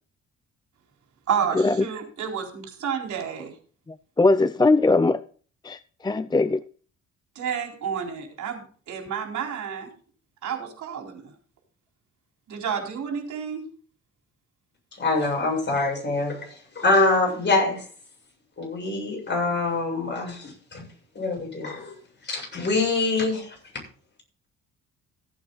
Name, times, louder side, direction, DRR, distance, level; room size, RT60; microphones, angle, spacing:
voice 1, 1.3-3.5 7.4-9.9 10.4-11.3 12.5-13.7, right 7 dB, 70° right, 4.1 m, -30 dB
voice 2, 3.9-5.2 5.6-6.6, left 3 dB, 15° left, 0.5 m, -21 dB
voice 3, 15.0-16.5 16.8-17.8 18.6-20.9 21.1-22.0 22.2-23.5, left 3 dB, 35° left, 7.6 m, -24 dB
15.5 x 8.6 x 4.0 m
cardioid pair, 90°, 30 cm